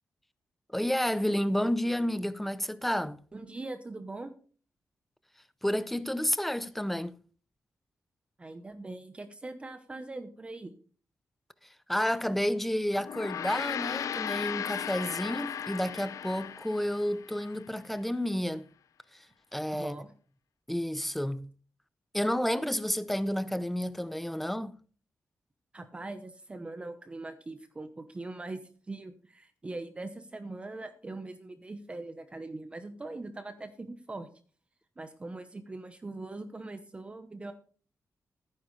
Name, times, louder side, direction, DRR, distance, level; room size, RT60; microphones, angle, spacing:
voice 1, 0.7-3.2 5.6-7.2 11.9-18.7 19.5-19.9 20.7-21.5 22.1-24.7, equal, 5° left, 0.5 m, -30 dB
voice 2, 3.3-4.3 8.4-10.7 19.7-20.1 25.7-34.3 35.0-37.5, right 2 dB, 20° right, 0.9 m, -41 dB
Gong, 13.0-17.6, left 9 dB, 70° left, 0.4 m, -36 dB
15.0 x 9.7 x 3.2 m
wide cardioid pair, 175°, 6 cm